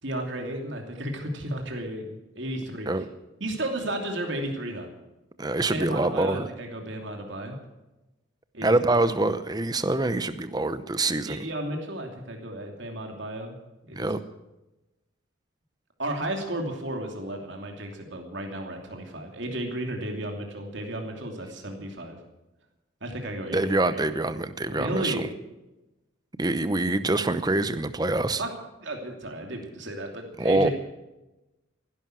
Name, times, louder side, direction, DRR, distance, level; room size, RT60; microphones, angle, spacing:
voice 1, 0.0-2.9 3.4-4.9 5.7-7.6 8.5-9.0 11.2-13.6 13.9-14.1 16.0-22.2 23.0-24.0 24.7-25.4 28.4-28.5 28.8-30.7, right 1 dB, 60° right, 2 dB, 2.8 m, -33 dB
voice 2, 5.4-6.5 8.6-11.5 14.0-14.2 23.5-25.3 26.4-28.4 30.4-30.7, right 2 dB, 20° right, 12 dB, 0.8 m, -25 dB
16.0 x 11.5 x 7.7 m, 1.0 s
head